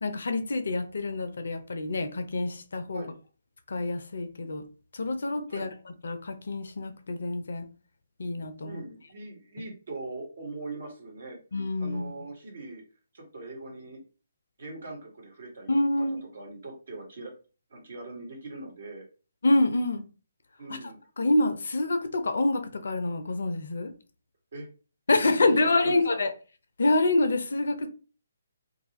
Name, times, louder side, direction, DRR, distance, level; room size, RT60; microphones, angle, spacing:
voice 1, 0.0-3.0 3.7-4.6 4.9-5.7 6.0-7.7 8.2-8.8 11.5-12.1 15.7-16.2 19.4-20.1 21.2-23.9 25.1-26.3 26.8-27.9, left 2 dB, 60° left, 0.4 m, -26 dB
voice 2, 8.6-11.4 11.8-12.8 13.1-14.0 14.6-15.7 16.0-16.1 16.3-17.3 17.7-19.0 20.6-21.0 24.5-24.7 25.2-26.2, right 2 dB, 55° right, 1.1 m, -41 dB
2.5 x 2.3 x 3.0 m
figure-of-eight pair, 135°, 0 cm